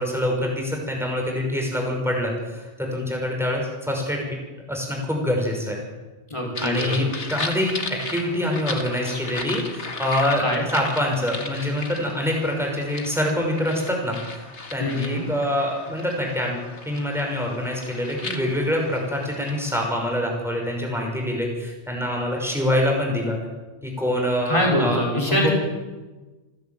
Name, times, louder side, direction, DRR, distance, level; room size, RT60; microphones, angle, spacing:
voice 1, 0.0-4.2 4.7-5.8 6.6-10.5 10.7-16.6 16.9-23.4 23.8-25.0 25.3-25.5, left 1 dB, ahead, 0 dB, 5.9 m, -25 dB
voice 2, 6.3-7.1 10.4-10.6 14.8-15.2 24.5-25.5, equal, 25° left, -2 dB, 5.5 m, -24 dB
sound 1, 6.6-19.8, left 3 dB, 75° left, 2.3 m, -36 dB
28.0 x 11.0 x 9.2 m, 1.2 s
omnidirectional pair, 1.2 m